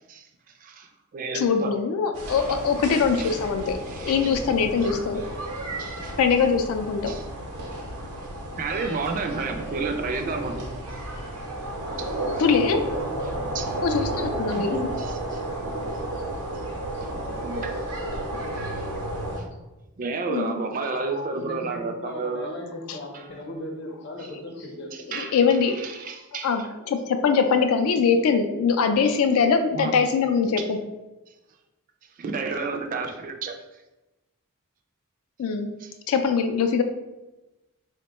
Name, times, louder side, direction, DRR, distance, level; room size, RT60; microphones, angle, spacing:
voice 1, 0.6-1.7 3.2-3.4 3.9-4.4 4.8-4.9 5.8-6.2 7.1-7.3 8.0-8.1 8.6-10.7 12.0-12.2 13.5-13.7 14.6-15.4 17.1-17.8 20.0-22.5 23.1-23.3 25.1-25.4 25.7-26.7 29.8-29.9 30.6-30.7 32.2-33.6 35.8-35.9, right 4 dB, 40° right, 5 dB, 0.3 m, -31 dB
voice 2, 1.3-3.8 4.1-5.2 6.2-7.1 12.4-12.8 13.8-14.9 20.3-20.6 25.1-25.8 26.4-30.8 35.4-35.7 36.1-36.8, left 5 dB, 75° left, 6 dB, 0.3 m, -22 dB
sound 1, 2.1-19.4, right 1 dB, 85° right, 0.7 m, -32 dB
voice 3, 5.7-6.2 9.3-9.7 11.1-11.3 11.9-12.6 12.8-13.3 14.6-15.1 16.1-17.2 20.9-25.2, left 1 dB, 50° left, 1 dB, 0.7 m, -39 dB
3.6 x 2.2 x 4.0 m, 1.1 s
head